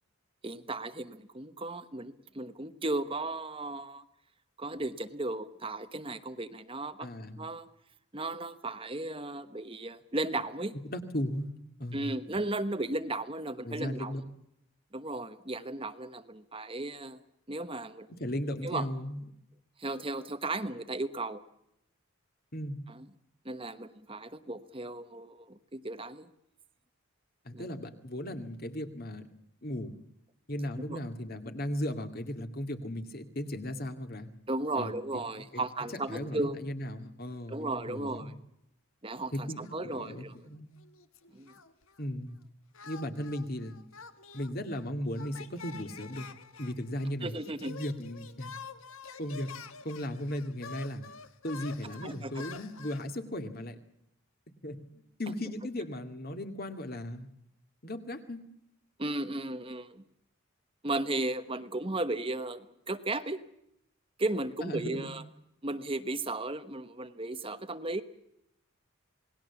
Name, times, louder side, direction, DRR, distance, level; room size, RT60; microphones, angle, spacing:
voice 1, 0.4-4.0 4.6-7.1 7.4-7.7 8.1-10.7 11.9-14.1 14.9-17.2 17.5-18.1 18.6-18.9 19.8-21.4 22.9-23.1 23.4-26.3 27.5-27.7 30.9-31.0 34.5-36.6 37.5-38.3 39.0-40.3 41.3-41.5 47.2-47.7 52.0-52.4 59.0-60.0 60.8-63.4 64.2-65.2 65.6-68.0, right 2 dB, 25° right, 9 dB, 1.1 m, -35 dB
voice 2, 7.0-7.4 10.9-12.1 13.6-14.2 18.1-19.2 22.5-22.8 27.4-29.2 29.6-30.0 30.5-34.3 34.8-34.9 35.4-35.6 35.9-38.3 39.3-40.7 42.0-42.4 42.8-43.8 44.3-46.3 46.6-47.3 47.7-48.5 49.2-49.5 49.8-51.1 51.4-53.8 54.6-54.8 55.2-57.3 57.8-58.4 64.6-65.1, left 1 dB, 45° left, 7 dB, 2.3 m, -36 dB
sound 1, 39.6-40.5 40.8-42.1 42.7-53.1, left 5 dB, 70° left, 1.7 m, -48 dB
28.0 x 20.0 x 7.2 m, 0.80 s
head